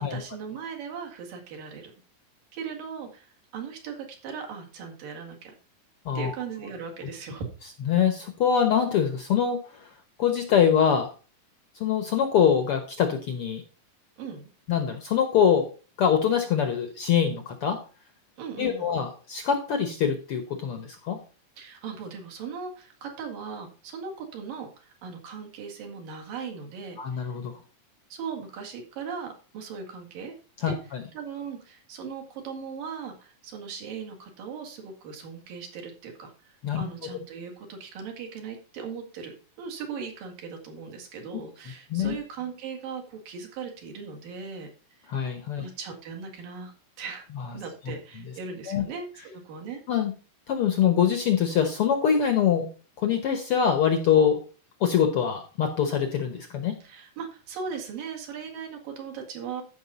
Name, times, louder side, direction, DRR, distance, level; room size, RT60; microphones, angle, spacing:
voice 1, 0.1-1.9 2.5-5.6 6.2-7.5 14.2-14.5 18.4-18.9 21.6-27.3 28.1-30.3 30.7-30.8 31.1-44.7 45.6-46.7 47.0-47.3 47.5-49.8 56.8-59.6, right 6 dB, 85° right, 2 dB, 3.8 m, -38 dB
voice 2, 7.8-9.9 10.2-11.1 11.7-13.6 14.7-15.7 16.0-17.8 18.6-21.2 27.0-27.6 30.6-31.0 36.6-36.8 41.9-42.1 45.1-45.6 47.9-48.0 48.7-48.8 49.9-50.1 50.5-52.7 53.0-54.4 54.8-56.8, left 8 dB, 75° left, 7 dB, 1.3 m, -24 dB
14.0 x 5.7 x 4.1 m, 0.36 s
omnidirectional pair, 3.8 m